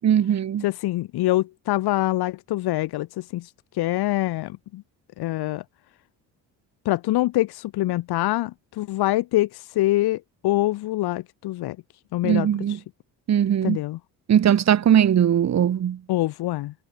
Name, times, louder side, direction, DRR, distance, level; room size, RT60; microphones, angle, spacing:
voice 1, 0.0-0.7 12.2-12.8 13.3-13.8 14.3-16.0, right 9 dB, 45° right, 1.4 m, -19 dB
voice 2, 0.6-4.8 5.2-5.6 6.8-11.8 12.1-12.8 13.6-14.0 16.1-16.7, left 16 dB, 85° left, 1.6 m, -25 dB
cardioid pair, 105°, 37 cm